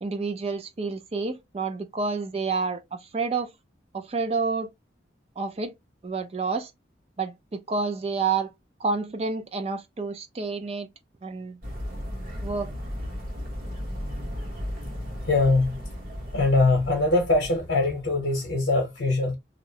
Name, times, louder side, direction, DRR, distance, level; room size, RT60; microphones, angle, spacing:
voice 1, 0.0-3.5 3.9-4.7 5.4-5.7 6.0-6.7 7.2-8.5 8.8-10.9 11.2-11.6 12.4-12.7, right 4 dB, 35° right, 0.4 m, -29 dB
sound 1, 11.6-18.0, equal, 50° right, 1.1 m, -35 dB
voice 2, 15.2-15.8 16.3-19.4, left 2 dB, 75° left, 0.8 m, -22 dB
2.8 x 2.0 x 2.7 m
head